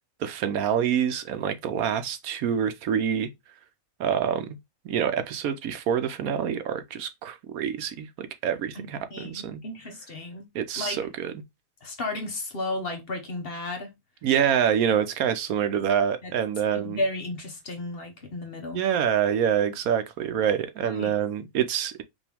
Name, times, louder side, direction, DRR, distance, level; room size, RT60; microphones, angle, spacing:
voice 1, 0.2-3.3 4.0-4.5 4.8-9.6 10.5-11.3 14.2-17.0 18.7-22.0, right 8 dB, 75° right, 1.1 m, -26 dB
voice 2, 9.1-10.4 10.8-11.0 11.8-13.9 16.2-16.3 16.7-18.8 20.8-21.1, left 2 dB, 45° left, 1.1 m, -33 dB
5.3 x 2.7 x 3.4 m
omnidirectional pair, 1.5 m